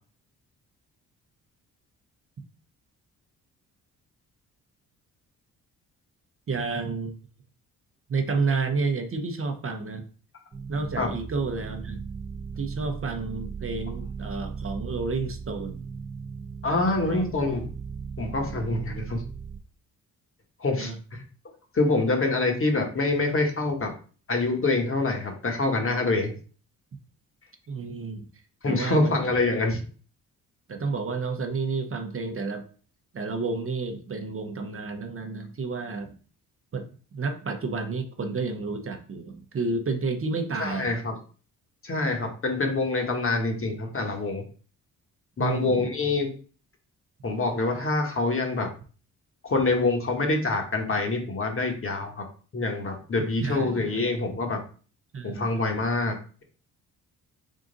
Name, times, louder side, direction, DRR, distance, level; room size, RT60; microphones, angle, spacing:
voice 1, 6.5-7.1 8.1-10.0 10.7-12.0 12.6-15.8 16.9-17.2 20.8-21.0 27.7-28.3 28.6-29.2 30.7-32.6 33.1-36.2 36.7-40.9 45.4-45.9 53.4-54.0 55.1-55.5, right 4 dB, 35° right, 5 dB, 0.8 m, -30 dB
sound 1, 10.5-19.6, right 5 dB, 20° right, 0.4 m, -37 dB
voice 2, 16.6-17.7 18.2-19.2 20.6-21.2 21.7-23.9 24.3-26.3 28.6-29.8 40.6-41.2 41.8-44.4 45.4-46.3 47.2-48.7 49.4-52.2 52.5-54.6 55.2-56.2, left 2 dB, 35° left, 3 dB, 1.3 m, -26 dB
3.8 x 2.4 x 3.9 m, 0.40 s
supercardioid pair, 60°, 36 cm